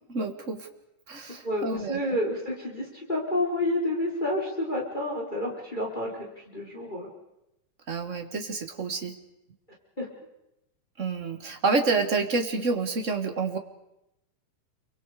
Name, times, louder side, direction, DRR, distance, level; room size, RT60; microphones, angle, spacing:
voice 1, 0.1-0.7 1.1-2.2 7.9-9.2 11.0-13.6, right 4 dB, 30° right, 6 dB, 1.5 m, -28 dB
voice 2, 1.4-7.1 10.0-10.1, left 1 dB, 15° left, -1 dB, 4.1 m, -29 dB
28.5 x 24.5 x 5.0 m, 0.87 s
omnidirectional pair, 3.7 m